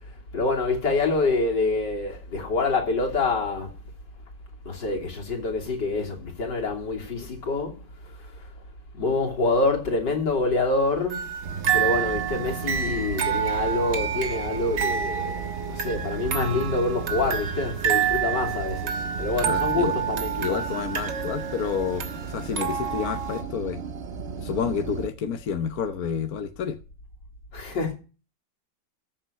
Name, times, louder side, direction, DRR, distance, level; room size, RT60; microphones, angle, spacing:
voice 1, 0.1-3.7 4.7-8.5 8.9-11.3 11.7-20.6 27.5-27.9, left 3 dB, 75° left, 3.6 m, -26 dB
sound 1, 11.1-23.4, right 8 dB, 70° right, 2.1 m, -29 dB
sound 2, 11.4-25.1, right 6 dB, 45° right, 0.9 m, -35 dB
voice 2, 19.4-19.9 20.4-23.8 24.4-26.8, left 7 dB, 60° left, 1.4 m, -29 dB
14.0 x 7.3 x 5.6 m
omnidirectional pair, 1.9 m